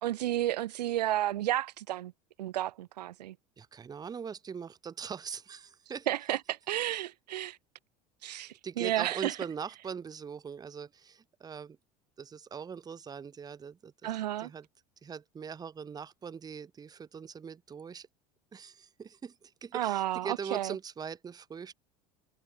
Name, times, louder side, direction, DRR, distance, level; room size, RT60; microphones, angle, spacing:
voice 1, 0.0-2.1 2.4-3.4 6.1-7.6 8.2-9.3 14.0-14.5 19.7-20.7, right 14 dB, 90° right, 0.4 m, -32 dB
voice 2, 3.6-6.1 8.2-11.8 12.2-14.1 14.4-14.7 15.0-18.1 18.5-21.7, right 6 dB, 20° right, 0.6 m, -41 dB
hypercardioid pair, 80°, 21 cm